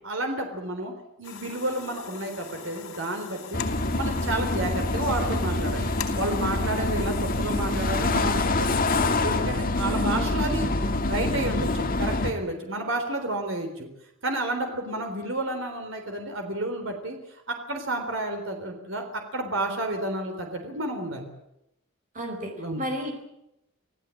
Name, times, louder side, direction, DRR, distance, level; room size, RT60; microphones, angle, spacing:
voice 1, 0.0-0.9 1.2-3.6 3.9-5.9 6.2-8.9 9.2-13.9 14.2-17.2 17.5-21.3 22.6-22.8, right 1 dB, 65° right, 4 dB, 3.8 m, -31 dB
sound 1, 1.2-8.2, left 6 dB, 85° left, 4.3 m, -41 dB
sound 2, 3.5-12.3, left 2 dB, 40° left, 2.1 m, -26 dB
voice 2, 9.8-10.3 22.1-23.1, equal, 40° right, 3 dB, 4.8 m, -33 dB
27.5 x 16.5 x 8.5 m, 0.84 s
head